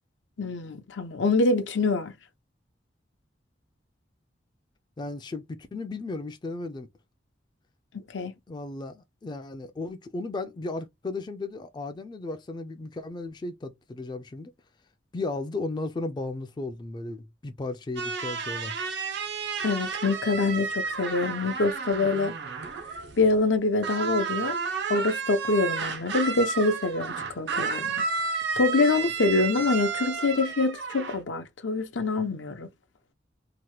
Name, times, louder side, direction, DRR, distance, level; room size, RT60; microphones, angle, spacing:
voice 1, 0.4-2.1 7.9-8.3 19.6-22.3 23.2-24.6 24.9-28.0 28.6-32.7, left 3 dB, 80° left, 0.6 m, -25 dB
voice 2, 5.0-6.9 8.5-14.5 15.1-18.7, left 2 dB, 25° left, 0.3 m, -35 dB
sound 1, 18.0-23.5 23.8-31.2, right 5 dB, 65° right, 0.4 m, -32 dB
2.8 x 2.1 x 3.0 m
head